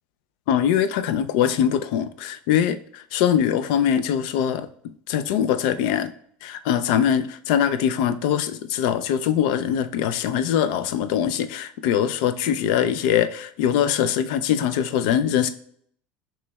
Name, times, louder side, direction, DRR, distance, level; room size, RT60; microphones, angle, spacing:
voice 1, 0.5-4.7 5.1-6.1 6.4-15.5, left 9 dB, 65° left, 0.4 m, -22 dB
6.1 x 3.1 x 2.2 m
cardioid pair, 170°, 5 cm